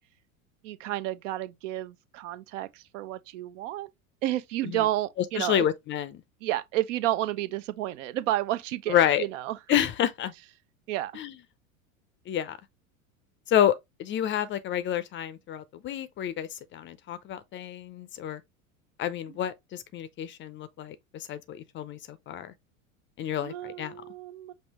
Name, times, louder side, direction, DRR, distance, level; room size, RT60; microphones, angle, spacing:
voice 1, 0.6-3.9 4.2-5.7 6.4-9.6 10.9-11.1 23.4-24.5, right 14 dB, 65° right, 0.6 m, -31 dB
voice 2, 5.3-6.2 8.9-9.3 9.7-10.3 11.1-11.3 12.3-12.6 13.5-13.7 14.0-18.4 19.0-22.5 23.2-23.9, left 10 dB, 30° left, 0.5 m, -29 dB
5.4 x 2.7 x 2.9 m
hypercardioid pair, 85°, 41 cm